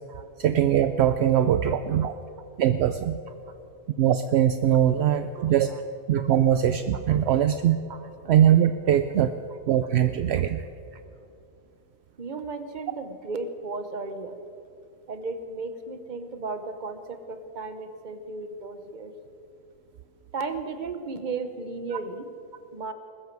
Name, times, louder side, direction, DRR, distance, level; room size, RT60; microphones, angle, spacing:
voice 1, 0.4-2.1 2.6-3.2 4.0-5.7 6.1-7.8 8.3-9.3 9.7-10.6, right 10 dB, 70° right, 10 dB, 0.8 m, -21 dB
voice 2, 1.4-2.1 4.7-5.1 5.4-5.8 6.2-6.3 6.9-7.2 7.9-8.1 9.5-9.6 10.6-10.7 10.9-11.0 12.2-14.4 15.1-19.1 20.3-22.3 22.7-22.9, right 3 dB, 45° right, 9 dB, 1.1 m, -35 dB
20.5 x 13.5 x 4.7 m, 2.5 s
omnidirectional pair, 1.2 m